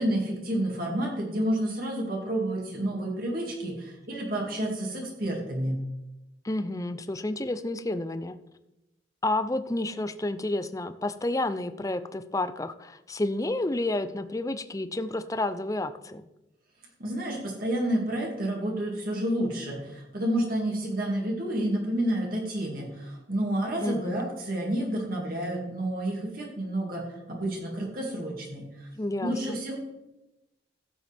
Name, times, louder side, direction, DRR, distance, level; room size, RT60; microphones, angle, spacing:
voice 1, 0.0-5.8 17.0-28.9 29.2-29.8, right 1 dB, 50° right, -1 dB, 2.3 m, -30 dB
voice 2, 6.4-8.4 9.2-16.2 23.8-24.2 29.0-29.6, left 2 dB, 20° left, 11 dB, 0.5 m, -30 dB
15.5 x 7.8 x 3.5 m, 0.94 s
head